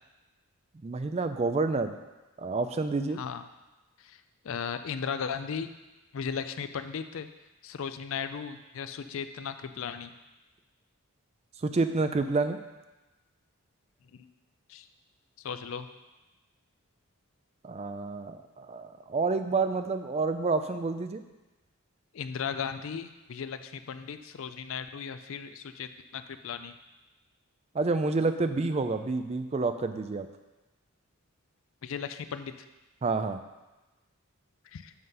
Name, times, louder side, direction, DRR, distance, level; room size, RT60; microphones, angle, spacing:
voice 1, 0.8-1.9 2.4-3.2 11.6-12.6 17.6-21.2 27.7-30.3 33.0-33.4, right 3 dB, 30° right, 9 dB, 0.3 m, -29 dB
voice 2, 4.0-5.7 6.1-7.3 7.6-10.1 14.1-14.3 14.7-14.9 15.4-15.9 22.1-26.7 31.8-32.7 34.6-34.9, left 6 dB, 60° left, 10 dB, 0.4 m, -36 dB
7.7 x 3.9 x 5.4 m, 1.1 s
head